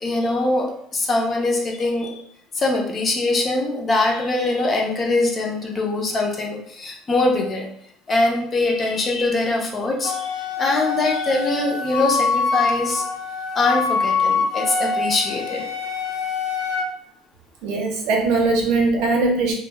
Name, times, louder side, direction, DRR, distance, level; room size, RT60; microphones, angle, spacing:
voice 1, 0.0-2.1 2.6-7.7 8.1-13.0 13.6-15.6, left 2 dB, 20° left, 0 dB, 0.4 m, -22 dB
Wind instrument woodwind instrument, 10.0-16.9, left 5 dB, 85° left, 0.4 m, -24 dB
voice 2, 17.6-19.5, right 3 dB, 65° right, 0 dB, 0.6 m, -20 dB
2.1 x 2.0 x 3.2 m, 0.67 s
cardioid pair, 175°, 0 cm